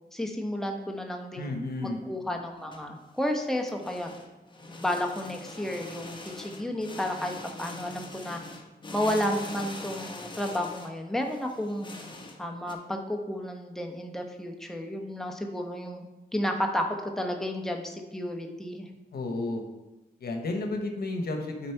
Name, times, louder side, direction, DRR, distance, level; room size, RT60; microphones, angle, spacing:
voice 1, 0.1-4.1 4.7-7.3 7.6-8.4 8.9-11.9 12.4-16.0 16.3-18.9, left 1 dB, 5° left, 2 dB, 0.9 m, -32 dB
voice 2, 1.4-2.0 19.1-19.6 20.2-21.7, left 2 dB, 70° left, 4 dB, 1.0 m, -32 dB
sound 1, 2.5-12.7, left 2 dB, 30° left, 1.0 m, -43 dB
9.2 x 4.1 x 4.5 m, 1.0 s
wide cardioid pair, 85°, 17 cm